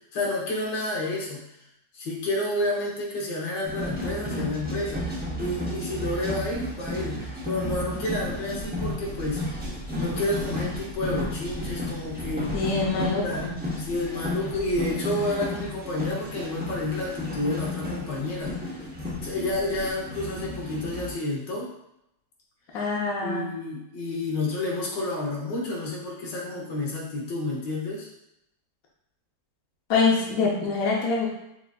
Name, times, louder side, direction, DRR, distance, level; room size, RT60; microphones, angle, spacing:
voice 1, 0.1-1.5 1.9-9.5 10.0-12.5 12.9-13.5 13.8-18.6 19.2-21.7 23.2-28.1, left 2 dB, 85° left, -3 dB, 1.7 m, -30 dB
sound 1, 3.6-21.1, left 1 dB, 15° right, 0.3 m, -33 dB
voice 2, 12.5-13.6 22.7-23.5 29.9-31.3, left 4 dB, 60° left, -2 dB, 1.2 m, -25 dB
6.6 x 2.6 x 2.3 m, 0.82 s
omnidirectional pair, 1.9 m